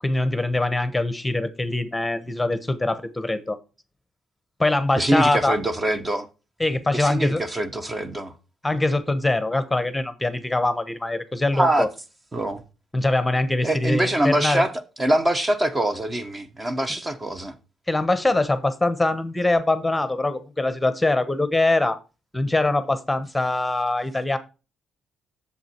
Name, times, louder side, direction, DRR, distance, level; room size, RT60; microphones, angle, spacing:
voice 1, 0.0-3.6 4.6-5.6 6.6-7.4 8.6-11.9 12.9-14.6 17.9-22.0 22.3-24.4, left 2 dB, 10° left, 1.0 m, -23 dB
voice 2, 5.0-6.3 6.9-8.3 11.5-11.9 12.3-12.6 13.6-14.7 15.0-17.5, right 1 dB, 25° right, 1.2 m, -23 dB
7.8 x 7.1 x 4.5 m
cardioid pair, 90°, 0 cm